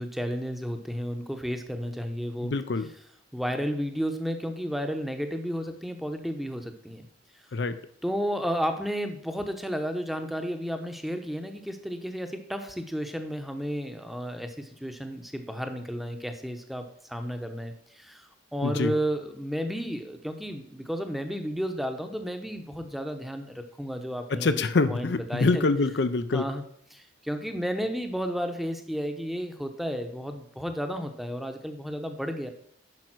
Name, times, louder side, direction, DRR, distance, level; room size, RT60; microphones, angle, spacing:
voice 1, 0.0-2.5 3.3-7.1 8.0-25.6 26.3-26.6 26.9-32.5, equal, ahead, 6 dB, 0.8 m, -32 dB
voice 2, 2.4-2.9 7.5-7.8 18.6-18.9 24.3-26.5, left 3 dB, 60° left, 11 dB, 0.5 m, -25 dB
11.0 x 5.3 x 6.1 m, 0.67 s
head